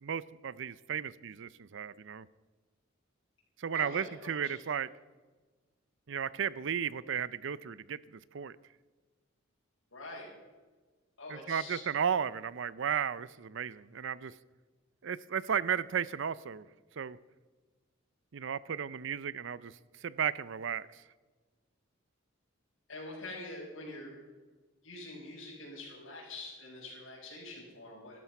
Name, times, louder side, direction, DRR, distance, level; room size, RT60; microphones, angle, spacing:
voice 1, 0.0-2.3 3.6-4.9 6.1-8.5 11.3-14.3 15.0-16.6 17.0-17.2 18.3-19.7 20.0-21.0, right 7 dB, 65° right, 19 dB, 0.5 m, -34 dB
voice 2, 3.7-4.5 9.9-10.3 11.2-11.8 22.9-24.2 24.8-28.2, left 2 dB, 75° left, -7 dB, 5.2 m, -45 dB
15.5 x 12.5 x 5.9 m, 1.3 s
head